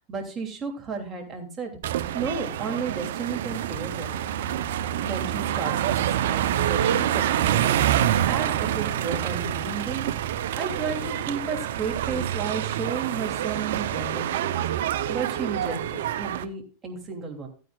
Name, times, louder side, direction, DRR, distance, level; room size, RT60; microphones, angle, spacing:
voice 1, 0.1-4.2 5.0-10.1 10.6-14.6 14.9-17.5, right 5 dB, 25° right, 3 dB, 3.0 m, -33 dB
sound 1, 1.8-16.4, right 11 dB, 75° right, 0.7 m, -26 dB
15.0 x 9.2 x 2.5 m, 0.38 s
hypercardioid pair, 115°, 0 cm